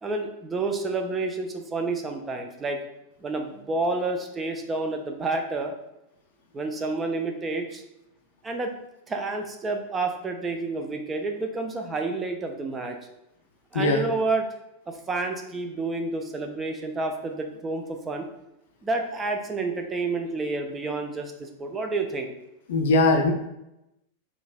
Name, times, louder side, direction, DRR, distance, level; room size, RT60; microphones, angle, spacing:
voice 1, 0.0-2.8 3.2-5.7 6.5-7.8 8.4-8.7 9.1-13.0 13.7-14.5 14.9-18.3 18.8-22.3, right 3 dB, 20° right, 5 dB, 0.4 m, -29 dB
voice 2, 22.7-23.3, left 2 dB, 60° left, 4 dB, 0.4 m, -20 dB
3.8 x 2.4 x 2.2 m, 0.87 s
figure-of-eight pair, 90°, 0 cm